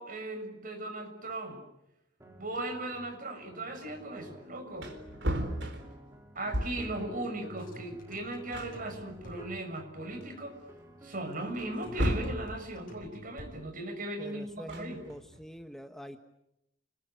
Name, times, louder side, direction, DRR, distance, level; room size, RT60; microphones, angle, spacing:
voice 1, 0.0-1.6 2.4-5.0 6.3-10.6 11.0-15.0, right 1 dB, 50° right, 5 dB, 6.7 m, -38 dB
sound 1, 2.2-12.6, left 1 dB, 15° right, 4.1 m, -52 dB
Wood, 4.3-4.4 4.7-7.0 8.1-8.2 8.5-9.7 10.2-10.3 11.5-12.5 14.5-15.4, equal, 70° right, 4.1 m, -34 dB
sound 2, 7.2-9.7 11.3-13.8, equal, 50° left, 6.2 m, -50 dB
voice 2, 14.2-16.2, equal, ahead, 6 dB, 1.3 m, -44 dB
29.5 x 21.0 x 9.4 m, 0.86 s
head